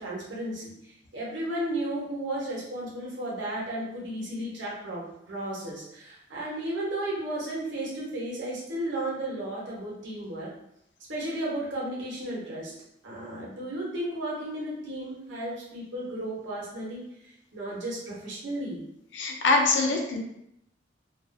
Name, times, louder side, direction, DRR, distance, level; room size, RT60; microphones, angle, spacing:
voice 1, 0.0-10.5 11.1-12.7 13.0-18.8, right 1 dB, 75° right, -5 dB, 0.8 m, -34 dB
voice 2, 19.1-20.2, left 3 dB, 70° left, 1 dB, 0.5 m, -23 dB
2.4 x 2.3 x 2.5 m, 0.80 s
head